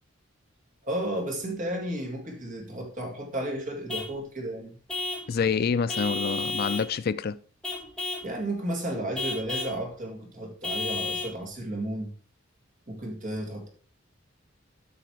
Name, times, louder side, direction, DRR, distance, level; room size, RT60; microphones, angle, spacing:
voice 1, 0.8-4.7 8.2-12.1 12.9-13.7, right 1 dB, 45° right, 2.2 m, -33 dB
Vehicle horn car horn honking / Truck, 3.9-4.2 4.9-5.3 5.9-6.9 7.6-8.3 9.1-9.8 10.6-11.4, left 2 dB, 5° left, 1.9 m, -32 dB
voice 2, 5.3-7.4, left 6 dB, 50° left, 0.4 m, -27 dB
8.0 x 5.9 x 4.6 m
head